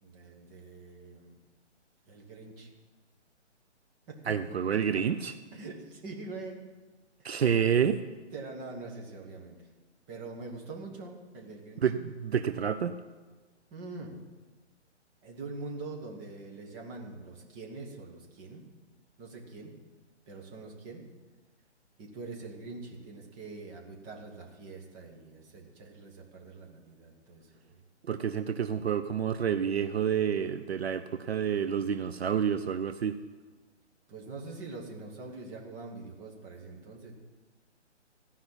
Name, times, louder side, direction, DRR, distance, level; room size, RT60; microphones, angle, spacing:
voice 1, 0.0-1.4 2.0-2.7 4.1-4.4 4.7-5.0 5.5-6.6 8.3-9.6 10.1-11.8 13.7-14.1 15.2-18.6 19.2-19.7 20.3-21.0 22.0-27.8 34.1-37.1, right 3 dB, 15° right, 0 dB, 1.4 m, -44 dB
voice 2, 4.3-5.3 7.2-8.0 11.8-12.9 28.0-33.2, right 8 dB, 60° right, 10 dB, 0.7 m, -28 dB
14.5 x 5.7 x 9.8 m, 1.3 s
hypercardioid pair, 160°, 36 cm